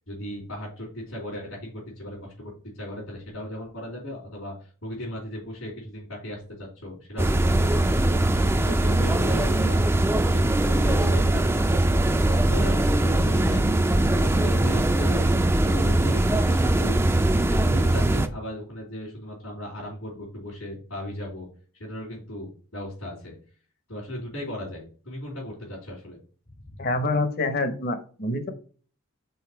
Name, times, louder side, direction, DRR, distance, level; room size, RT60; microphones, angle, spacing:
voice 1, 0.0-10.0 10.2-11.5 12.3-13.7 14.1-15.2 15.6-17.0 17.5-21.5 21.7-23.4 23.9-26.2 26.6-26.9, left 1 dB, 80° left, -6 dB, 3.3 m, -37 dB
sound 1, 7.2-18.3, right 1 dB, 10° right, 0.4 m, -21 dB
voice 2, 26.8-28.5, left 2 dB, 50° left, 9 dB, 0.9 m, -26 dB
5.6 x 4.1 x 4.5 m, 0.41 s
head